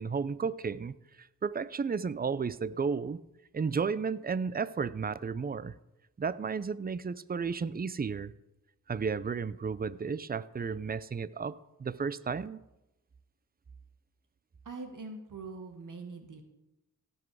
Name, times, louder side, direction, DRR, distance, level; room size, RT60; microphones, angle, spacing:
voice 1, 0.0-3.2 3.5-5.7 6.2-8.3 8.9-12.6, right 5 dB, 25° right, 18 dB, 0.5 m, -33 dB
voice 2, 14.7-16.4, right 3 dB, 65° right, 4 dB, 1.6 m, -43 dB
17.0 x 6.2 x 4.8 m, 0.94 s
cardioid pair, 50°, 33 cm